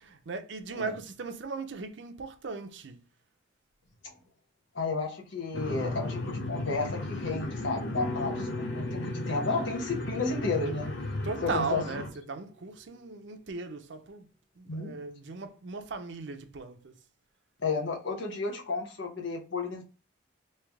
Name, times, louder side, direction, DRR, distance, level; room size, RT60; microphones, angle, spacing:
voice 1, 0.0-3.0 11.2-14.3 14.6-17.0, right 4 dB, 75° right, 0.6 m, -37 dB
voice 2, 4.7-10.9 11.4-11.8 14.7-14.9 17.6-19.8, left 3 dB, 90° left, 1.1 m, -32 dB
sound 1, 5.5-12.1, left 1 dB, 75° left, 0.7 m, -35 dB
sound 2, 8.0-12.2, left 2 dB, 5° left, 0.3 m, -42 dB
3.3 x 2.9 x 3.4 m
head